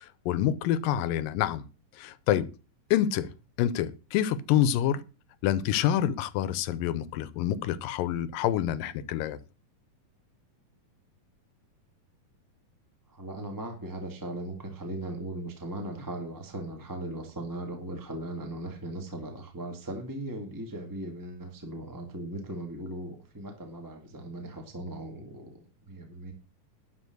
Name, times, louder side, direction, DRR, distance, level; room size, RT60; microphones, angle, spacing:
voice 1, 0.0-1.7 1.9-2.5 2.9-3.3 3.6-5.0 5.4-9.4, left 11 dB, 85° left, 2.4 m, -27 dB
voice 2, 13.1-26.3, right 1 dB, 10° right, 1.2 m, -38 dB
12.0 x 4.9 x 7.8 m
omnidirectional pair, 3.9 m